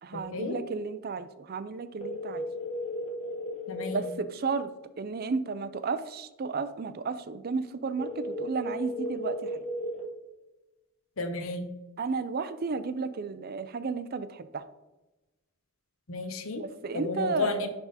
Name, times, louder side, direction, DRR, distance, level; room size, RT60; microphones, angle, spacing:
voice 1, 0.0-2.5 3.9-4.7 5.0-9.6 12.0-14.6 16.6-17.7, right 4 dB, 45° right, 12 dB, 0.4 m, -33 dB
sound 1, 2.0-4.0 8.0-10.0, left 1 dB, 30° left, 1.4 m, -35 dB
voice 2, 3.7-4.0 11.2-11.7 16.1-16.6 17.0-17.7, left 3 dB, 70° left, 7 dB, 1.0 m, -32 dB
11.0 x 3.6 x 4.1 m, 1.0 s
head